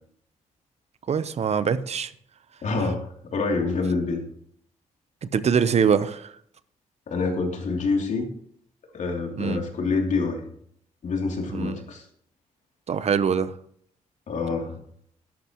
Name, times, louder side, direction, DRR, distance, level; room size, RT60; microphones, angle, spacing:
voice 1, 1.1-2.1 5.3-6.3 9.4-9.6 11.5-11.8 12.9-13.5, right 7 dB, 55° right, 13 dB, 0.9 m, -23 dB
voice 2, 2.6-4.2 7.1-8.3 8.9-10.4 11.0-12.0 14.3-14.8, left 4 dB, 60° left, 2 dB, 3.0 m, -26 dB
12.0 x 11.5 x 3.1 m, 0.64 s
cardioid pair, 75°, 14 cm